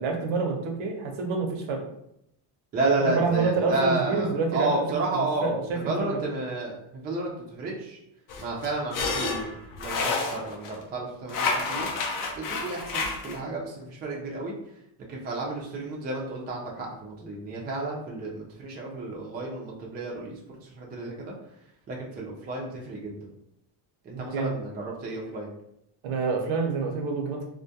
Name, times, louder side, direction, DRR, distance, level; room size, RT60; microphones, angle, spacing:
voice 1, 0.0-1.8 2.8-4.7 5.1-5.9 24.1-24.5 26.0-27.5, right 4 dB, 65° right, 3 dB, 0.7 m, -28 dB
voice 2, 2.7-8.0 8.4-11.9 12.3-14.5 15.1-21.3 21.9-23.2 24.0-25.5, right 2 dB, 20° right, -2 dB, 0.3 m, -31 dB
sound 1, 8.3-10.8 11.3-13.4, left 3 dB, 45° left, 0.4 m, -29 dB
2.3 x 2.1 x 2.7 m, 0.77 s
cardioid pair, 120°, 50 cm